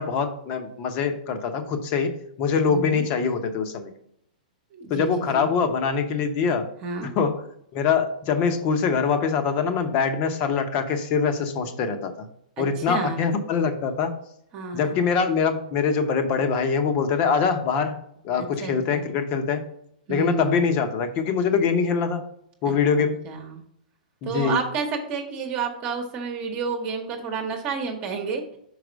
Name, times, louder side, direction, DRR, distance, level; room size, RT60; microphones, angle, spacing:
voice 1, 0.0-3.9 4.9-6.7 7.1-7.4 7.7-12.3 12.6-14.1 14.7-18.0 18.2-19.6 20.1-22.2 22.6-23.2 24.2-24.6, left 5 dB, 35° left, 7 dB, 1.0 m, -23 dB
voice 2, 2.7-3.1 4.7-5.5 6.8-7.1 12.6-13.3 14.5-15.0 18.4-19.1 20.1-20.8 22.6-22.7 23.2-23.6 24.2-28.5, right 4 dB, 30° right, 3 dB, 1.1 m, -30 dB
5.7 x 4.9 x 5.2 m, 0.71 s
hypercardioid pair, 150°, 5 cm